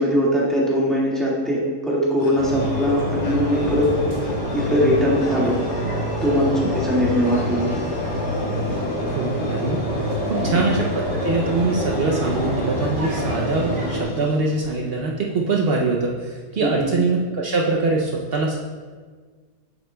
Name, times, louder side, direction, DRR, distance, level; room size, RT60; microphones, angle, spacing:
voice 1, 0.0-3.9 4.5-5.6 6.2-7.7 10.5-10.6 16.6-16.9, equal, ahead, -7 dB, 1.6 m, -21 dB
sound 1, 2.2-15.1, left 2 dB, 60° left, 0.7 m, -36 dB
sound 2, 2.4-14.0, equal, 30° right, 1.8 m, -26 dB
voice 2, 9.1-18.6, right 3 dB, 75° right, -1 dB, 0.5 m, -23 dB
8.8 x 8.0 x 2.2 m, 1.5 s
omnidirectional pair, 1.8 m